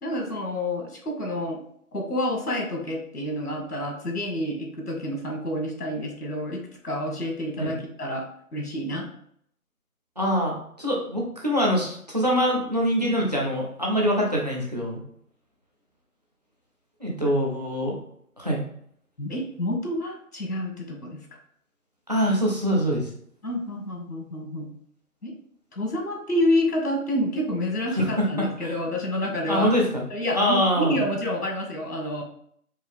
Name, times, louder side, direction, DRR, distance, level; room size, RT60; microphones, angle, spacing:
voice 1, 0.0-1.6 1.9-8.3 8.5-9.1 19.2-21.2 23.4-24.7 25.2-25.3 25.7-29.7 30.1-32.2, left 1 dB, 80° left, 2 dB, 1.6 m, -28 dB
voice 2, 10.2-15.0 17.0-17.9 18.4-18.6 22.1-23.1 27.9-28.7 29.5-30.0 30.3-31.0, equal, 30° right, -2 dB, 0.7 m, -24 dB
4.6 x 2.6 x 3.5 m, 0.65 s
figure-of-eight pair, 160°, 45 cm